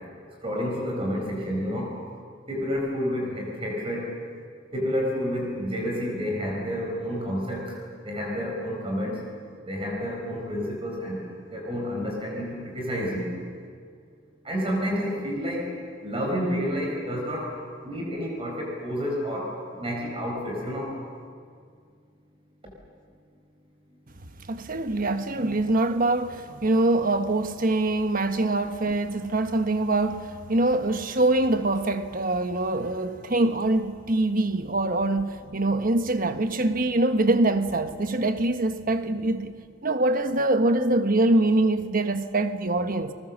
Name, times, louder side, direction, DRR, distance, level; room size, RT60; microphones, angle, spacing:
voice 1, 0.4-1.9 2.5-4.1 4.7-7.7 8.0-9.2 9.6-11.2 11.5-13.3 14.4-15.7 16.0-17.5 17.8-20.9, equal, 30° right, -1 dB, 4.5 m, -29 dB
voice 2, 24.5-39.5 39.8-43.1, right 2 dB, 50° right, 9 dB, 1.2 m, -24 dB
29.5 x 20.0 x 7.4 m, 2.1 s
head